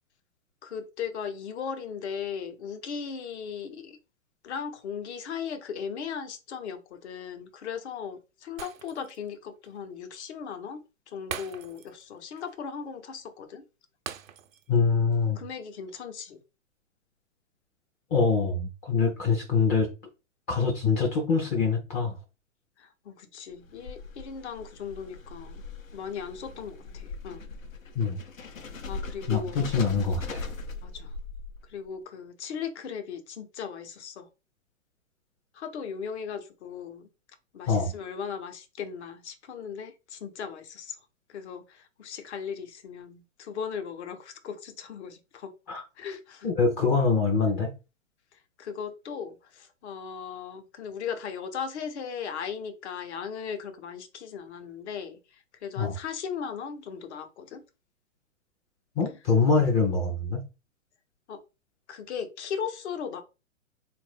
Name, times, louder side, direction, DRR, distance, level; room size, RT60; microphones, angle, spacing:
voice 1, 0.6-4.0 4.4-13.6 15.3-16.4 19.0-19.1 22.8-25.6 25.9-27.5 28.9-29.6 30.8-31.2 31.6-34.3 35.5-37.1 37.5-41.0 41.3-45.5 46.0-46.5 48.3-57.6 61.3-61.4 61.9-63.2, left 7 dB, 60° left, 0.9 m, -37 dB
Shatter, 8.6-9.3 9.6-9.8 11.3-12.1 12.4-12.5 14.1-14.8 15.1-15.3, right 9 dB, 80° right, 0.6 m, -41 dB
voice 2, 14.7-15.4 18.1-19.9 20.5-22.2 28.0-28.2 29.3-30.4 37.7-37.9 45.7-45.8 46.4-47.7 55.8-55.9 59.0-60.4, left 4 dB, 20° left, 0.5 m, -24 dB
sound 1, 23.5-31.8, left 3 dB, 85° left, 0.8 m, -40 dB
3.7 x 2.5 x 3.3 m
hypercardioid pair, 125°, 39 cm